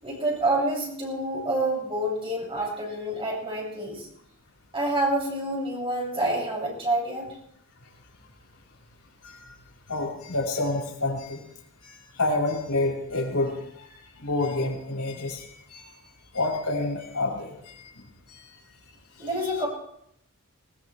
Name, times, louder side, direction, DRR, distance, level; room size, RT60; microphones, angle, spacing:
voice 1, 0.0-4.1 4.7-7.3 19.2-19.7, right 1 dB, 25° right, -4 dB, 6.7 m, -27 dB
voice 2, 9.2-9.5 9.9-11.4 11.8-13.9 14.2-15.9 16.3-17.9 18.3-18.4 19.4-19.7, left 2 dB, 85° left, -2 dB, 5.5 m, -29 dB
20.5 x 20.5 x 3.3 m, 0.73 s
head